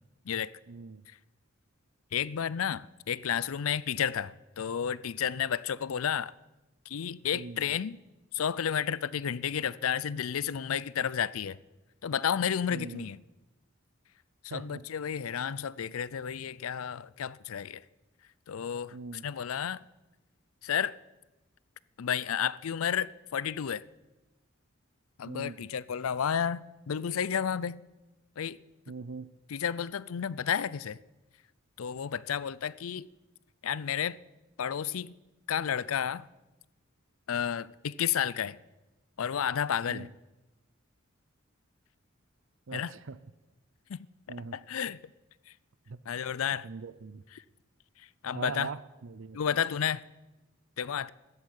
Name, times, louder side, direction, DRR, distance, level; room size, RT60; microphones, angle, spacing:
voice 1, 0.7-1.0 7.3-7.6 12.7-13.1 14.5-14.8 18.9-19.3 25.2-25.7 28.9-29.3 39.9-40.1 42.7-43.2 44.3-44.6 45.9-46.0 46.6-47.2 48.3-49.4, right 4 dB, 65° right, 0.6 m, -41 dB
voice 2, 2.1-6.3 6.9-8.0 8.3-11.6 12.0-13.2 14.4-17.8 18.5-18.9 19.2-19.8 20.6-20.9 22.0-23.8 25.2-27.8 28.4-28.6 29.5-31.0 31.8-33.1 33.6-34.2 34.6-35.1 35.5-36.3 37.3-38.6 39.2-40.1 42.7-42.9 43.9-44.0 44.5-45.0 46.1-46.7 48.2-48.7 49.3-50.1 50.8-51.1, left 8 dB, 80° left, 0.5 m, -31 dB
14.0 x 8.3 x 9.9 m
head